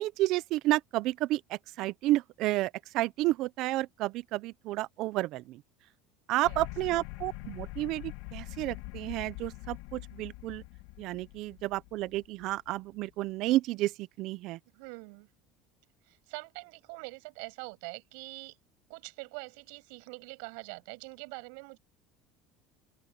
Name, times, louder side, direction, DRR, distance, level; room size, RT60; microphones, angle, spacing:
voice 1, 0.0-5.6 6.3-10.6 11.0-14.6, right 17 dB, 55° right, 0.6 m, -31 dB
sound 1, 6.4-12.9, left 19 dB, 75° left, 2.0 m, -44 dB
voice 2, 14.7-15.3 16.0-18.6 18.9-21.8, right 35 dB, 80° right, 7.0 m, -44 dB
open air
cardioid pair, 155°, 0 cm